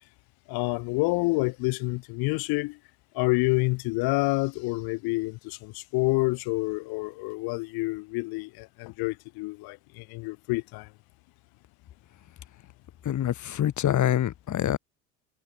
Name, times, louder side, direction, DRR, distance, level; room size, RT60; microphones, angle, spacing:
voice 1, 0.5-2.8 3.1-10.9, left 25 dB, 70° left, 6.5 m, -28 dB
voice 2, 13.0-14.8, left 11 dB, 50° left, 5.9 m, -25 dB
hypercardioid pair, 80°, 38 cm